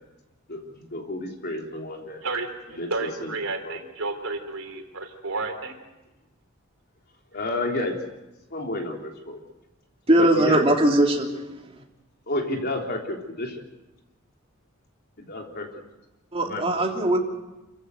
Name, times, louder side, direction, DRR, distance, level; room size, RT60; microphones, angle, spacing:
voice 1, 0.5-2.2 2.8-3.3 3.6-3.8 7.3-8.0 8.5-9.4 10.2-10.6 12.3-13.6 15.2-15.7 16.4-16.7 17.0-17.2, left 2 dB, 50° left, 1 dB, 3.6 m, -31 dB
voice 2, 2.2-5.8, right 3 dB, 80° right, 5 dB, 3.6 m, -31 dB
voice 3, 10.1-11.3 16.3-17.2, right 1 dB, 30° right, 1 dB, 3.1 m, -20 dB
27.0 x 15.5 x 7.9 m, 1.0 s
head